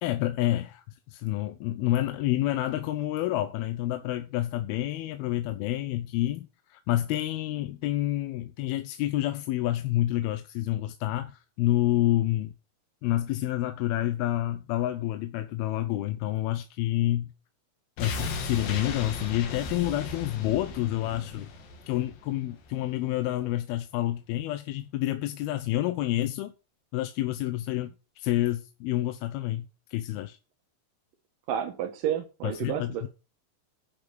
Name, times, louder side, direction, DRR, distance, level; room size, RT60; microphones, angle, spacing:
voice 1, 0.0-12.5 13.0-17.3 18.0-21.5 21.9-26.5 26.9-30.4 32.4-33.1, left 14 dB, 90° left, 2.7 m, -28 dB
sound 1, 18.0-22.9 23.2-23.3, left 3 dB, 70° left, 3.2 m, -36 dB
voice 2, 31.5-33.1, right 9 dB, 70° right, 2.6 m, -31 dB
10.5 x 5.1 x 6.2 m
omnidirectional pair, 4.3 m